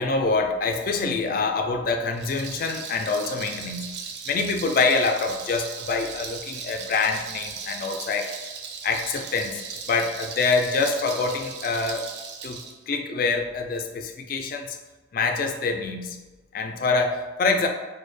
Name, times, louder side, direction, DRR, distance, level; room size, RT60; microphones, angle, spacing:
voice 1, 0.0-3.9 4.3-8.4 8.8-12.1 12.4-14.8 15.1-16.2 16.5-17.7, left 4 dB, 45° left, 4 dB, 0.3 m, -25 dB
Rattle, 2.1-12.7, right 6 dB, 55° right, 0.4 m, -37 dB
4.0 x 2.2 x 3.1 m, 1.2 s
head